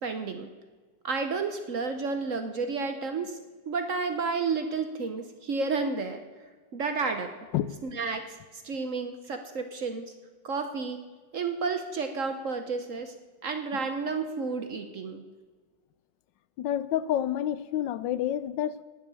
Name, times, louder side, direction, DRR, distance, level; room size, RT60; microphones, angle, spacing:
voice 1, 0.0-0.5 1.0-3.4 3.7-6.2 6.7-7.3 7.8-8.4 8.6-10.1 10.4-11.0 11.3-13.1 13.4-15.2, right 4 dB, 50° right, 7 dB, 1.0 m, -31 dB
voice 2, 16.6-18.8, left 11 dB, 80° left, 15 dB, 1.3 m, -29 dB
18.5 x 7.4 x 6.8 m, 1.4 s
omnidirectional pair, 2.0 m